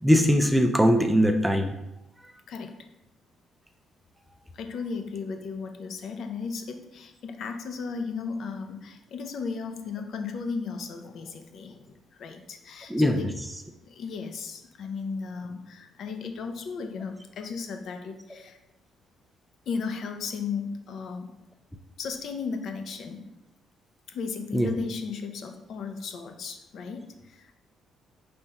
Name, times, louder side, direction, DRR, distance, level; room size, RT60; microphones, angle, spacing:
voice 1, 0.0-1.7 12.9-13.3 24.5-24.7, equal, 5° right, 5 dB, 0.4 m, -21 dB
voice 2, 2.5-2.8 4.5-13.3 13.8-18.6 19.7-21.3 22.0-23.3 24.1-27.5, left 5 dB, 60° left, 6 dB, 0.5 m, -35 dB
5.3 x 3.4 x 2.9 m, 0.89 s
cardioid pair, 125°, 0 cm